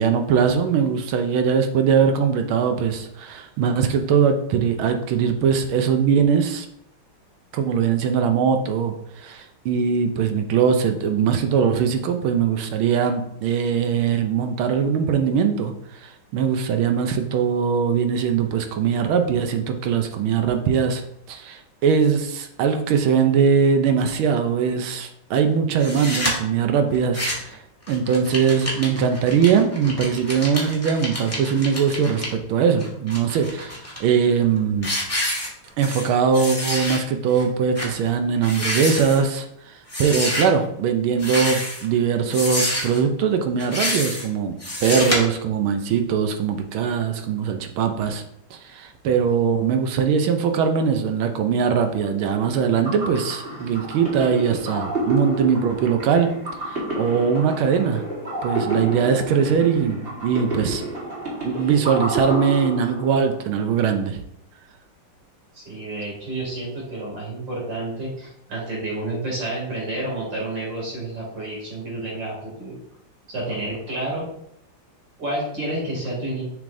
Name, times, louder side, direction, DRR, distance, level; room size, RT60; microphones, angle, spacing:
voice 1, 0.0-6.7 7.5-21.0 21.3-27.6 27.9-34.9 35.8-48.2 48.5-56.3 56.7-58.0 58.4-60.8 61.4-64.2, right 6 dB, 75° right, 6 dB, 1.4 m, -21 dB
sound 1, 25.8-26.3 26.9-27.5 27.9-32.3 32.8-34.0 34.4-34.6 34.8-36.1 36.3-37.0 37.3-37.4 37.7-37.9 38.4-39.2 39.9-40.4 41.1-41.8 42.3-43.0 43.6-44.2 44.6-45.2, left 1 dB, 10° left, 1.4 m, -27 dB
sound 2, 52.6-63.4, right 1 dB, 30° right, 1.6 m, -29 dB
voice 2, 65.5-72.7 73.3-74.3 75.2-76.4, right 1 dB, 55° right, -5 dB, 3.2 m, -30 dB
6.9 x 6.3 x 2.6 m, 0.76 s
omnidirectional pair, 2.4 m